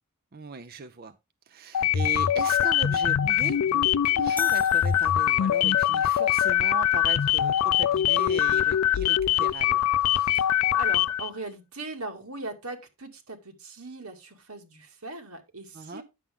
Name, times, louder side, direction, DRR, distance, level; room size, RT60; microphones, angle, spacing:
voice 1, 0.3-1.2 1.5-9.9 15.7-16.0, right 4 dB, 45° right, 0.5 m, -38 dB
sound 1, 1.7-11.3, left 10 dB, 85° left, 0.4 m, -23 dB
sound 2, 4.4-5.8, left 4 dB, 10° left, 0.4 m, -41 dB
voice 2, 10.1-10.5 10.7-16.0, right 2 dB, 85° right, 2.2 m, -39 dB
10.0 x 7.3 x 3.7 m
head